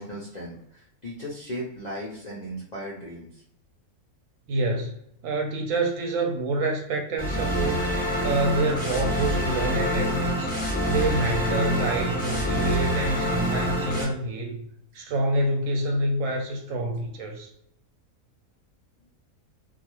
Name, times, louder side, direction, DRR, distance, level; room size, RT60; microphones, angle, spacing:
voice 1, 0.0-3.4, equal, 70° left, -5 dB, 0.4 m, -37 dB
voice 2, 4.5-4.9 5.2-7.9 8.2-10.5 10.8-14.6 14.9-17.5, right 1 dB, 70° right, 2 dB, 0.9 m, -27 dB
sound 1, 7.2-14.0, equal, 10° left, 0.6 m, -26 dB
2.4 x 2.3 x 3.0 m, 0.73 s
omnidirectional pair, 1.6 m